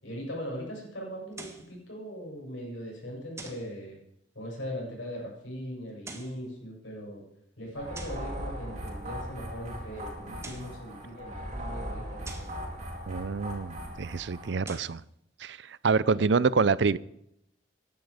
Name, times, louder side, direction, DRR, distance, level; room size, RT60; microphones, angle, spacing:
voice 1, 0.0-4.0 4.3-7.2 7.6-12.6 16.2-16.4, equal, 80° left, 7.6 m, -40 dB
sound 1, 1.3-1.7 3.4-3.7 5.9-6.4 7.9-8.3 10.2-10.8 12.2-12.6 14.5-15.0, right 3 dB, 15° right, 1.7 m, -45 dB
sound 2, 7.7-14.6, equal, 40° right, 4.0 m, -39 dB
voice 2, 13.1-15.0 15.4-17.0, right 4 dB, 65° right, 0.5 m, -26 dB
16.0 x 11.0 x 5.0 m
head